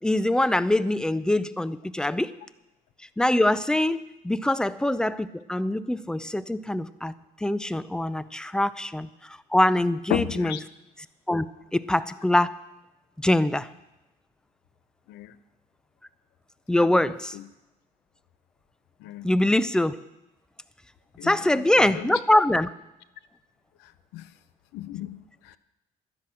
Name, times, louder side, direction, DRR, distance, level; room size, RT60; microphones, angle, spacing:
voice 1, 0.0-2.3 3.2-7.1 7.4-9.1 9.5-10.6 11.3-11.5 11.7-12.5 13.2-13.7 16.7-17.4 19.2-20.0 21.2-22.7, left 1 dB, 5° left, 16 dB, 0.5 m, -23 dB
voice 2, 10.1-10.6 15.1-15.4 16.8-17.4 19.0-19.3 21.2-22.2 23.8-24.3 24.7-25.6, left 13 dB, 85° left, 15 dB, 0.8 m, -35 dB
11.5 x 10.5 x 7.6 m, 0.95 s
cardioid pair, 110°, 17 cm